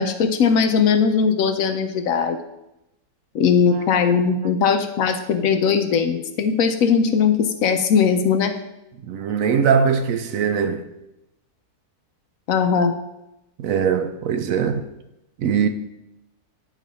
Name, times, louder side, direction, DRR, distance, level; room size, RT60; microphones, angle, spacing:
voice 1, 0.0-2.4 3.3-8.5 12.5-12.9, left 6 dB, 70° left, 0.9 m, -19 dB
voice 2, 9.1-10.8 13.6-14.8 15.4-15.7, right 7 dB, 70° right, 0.9 m, -21 dB
9.9 x 4.1 x 4.1 m
omnidirectional pair, 1.6 m